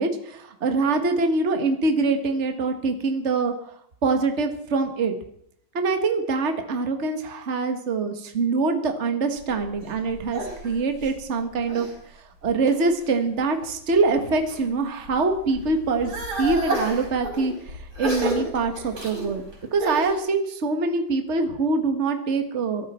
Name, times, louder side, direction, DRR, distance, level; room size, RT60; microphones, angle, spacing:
voice 1, 0.0-3.7 4.0-5.2 5.7-11.9 12.4-16.1 16.4-19.4 19.7-22.9, right 3 dB, 35° right, 6 dB, 1.7 m, -24 dB
sound 1, 9.4-12.0 12.4-13.0 13.6-14.6 15.0-20.2, right 1 dB, 75° right, 6.1 m, -32 dB
23.0 x 13.0 x 4.4 m, 0.70 s
omnidirectional pair, 2.2 m